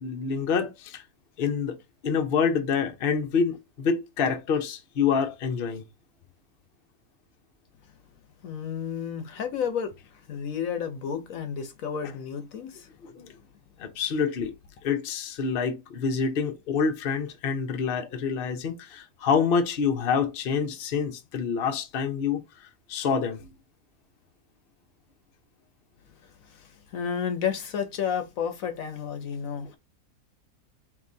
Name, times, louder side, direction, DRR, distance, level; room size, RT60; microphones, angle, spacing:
voice 1, 0.0-1.0 1.4-1.8 2.0-5.8 13.0-13.3 13.8-14.5 14.8-22.4 22.9-23.4, left 6 dB, 50° left, 0.8 m, -27 dB
voice 2, 8.4-12.9 26.4-29.8, left 7 dB, 65° left, 1.1 m, -32 dB
4.7 x 3.2 x 2.7 m
omnidirectional pair, 1.6 m